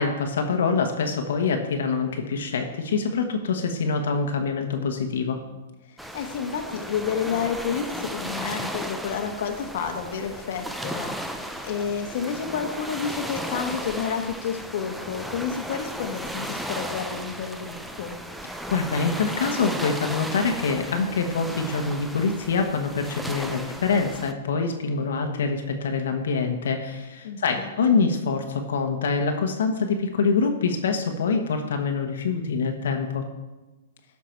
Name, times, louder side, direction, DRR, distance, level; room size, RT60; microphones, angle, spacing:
voice 1, 0.0-5.4 18.7-33.3, left 4 dB, 80° left, 4 dB, 1.2 m, -25 dB
voice 2, 5.8-18.2 27.2-28.0, left 7 dB, 60° left, 4 dB, 1.2 m, -30 dB
sound 1, 6.0-24.3, equal, ahead, 0.5 m, -35 dB
12.5 x 5.9 x 4.6 m, 1.1 s
hypercardioid pair, 150°, 0 cm